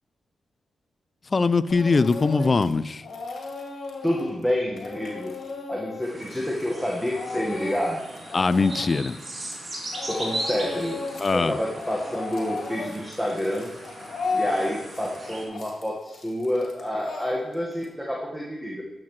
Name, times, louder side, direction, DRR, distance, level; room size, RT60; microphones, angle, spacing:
voice 1, 1.3-3.1 8.3-9.2 11.2-11.6, left 4 dB, 45° left, 15 dB, 0.4 m, -21 dB
Speech / Crying sobbing, 1.7-2.7 3.0-9.7 9.9-11.3 11.6-17.8, left 4 dB, 70° left, 2.1 m, -35 dB
voice 2, 2.4-2.8 4.0-5.3 5.7-8.0 10.1-11.0 11.3-13.7 14.3-18.8, equal, ahead, -3 dB, 1.5 m, -28 dB
sound 1, 6.0-15.4, right 1 dB, 40° right, 3.1 m, -38 dB
11.5 x 7.5 x 3.2 m, 1.1 s
cardioid pair, 55°, 0 cm